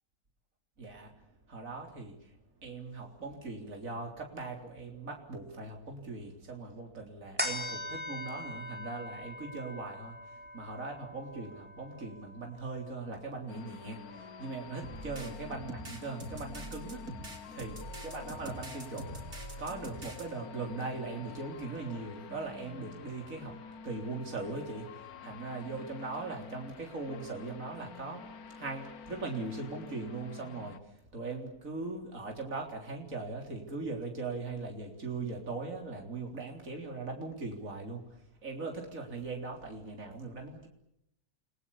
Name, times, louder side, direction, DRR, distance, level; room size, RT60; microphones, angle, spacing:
voice 1, 0.8-40.7, right 3 dB, 60° right, 2 dB, 4.2 m, -40 dB
sound 1, 7.4-14.1 14.6-14.7, left 1 dB, 5° right, 4.2 m, -42 dB
sound 2, 13.5-30.8, left 6 dB, 75° left, 1.8 m, -48 dB
sound 3, 14.8-20.2, right 1 dB, 85° right, 5.2 m, -44 dB
29.5 x 22.0 x 7.2 m, 0.77 s
omnidirectional pair, 1.6 m